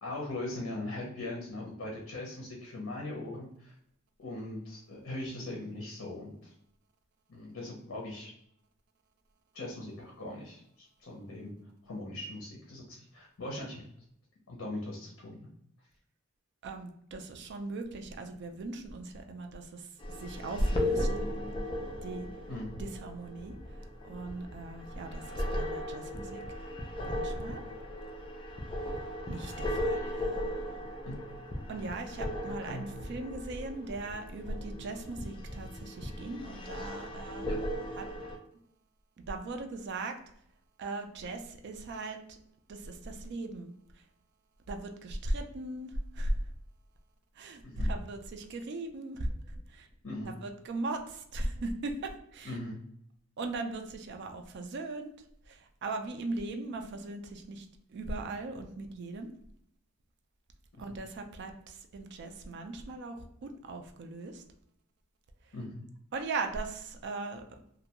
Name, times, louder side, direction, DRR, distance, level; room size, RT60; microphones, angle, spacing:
voice 1, 0.0-3.7 4.2-6.5 7.3-8.3 9.5-11.5 11.8-13.8 14.5-15.5 22.5-22.8 31.1-31.2 32.7-32.9 37.4-37.6 47.6-47.9 50.0-50.3 52.4-52.8 60.7-60.8 65.5-65.8, left 2 dB, 65° left, -2 dB, 0.6 m, -40 dB
voice 2, 16.6-19.9 20.2-21.1 22.0-22.3 22.7-23.5 23.8-26.4 27.0-27.7 29.3-30.4 31.7-37.5 38.0-38.1 39.3-40.2 40.8-42.4 42.7-43.7 44.7-46.4 47.4-49.9 50.2-52.6 53.4-55.1 55.5-59.3 60.8-64.4 66.1-67.4, right 2 dB, 55° right, 5 dB, 0.3 m, -38 dB
sound 1, 20.0-38.4, left 1 dB, 25° left, 0.4 m, -37 dB
2.5 x 2.2 x 2.8 m, 0.71 s
head